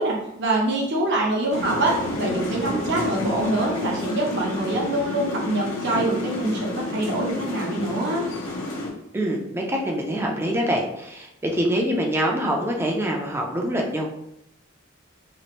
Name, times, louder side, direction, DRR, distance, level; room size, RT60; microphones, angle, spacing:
voice 1, 0.0-8.3, right 2 dB, 60° right, -1 dB, 0.7 m, -25 dB
sound 1, 1.5-8.9, left 2 dB, 75° left, 0.8 m, -30 dB
voice 2, 9.1-14.1, equal, 10° right, 0 dB, 0.4 m, -25 dB
3.0 x 2.5 x 3.0 m, 0.80 s
head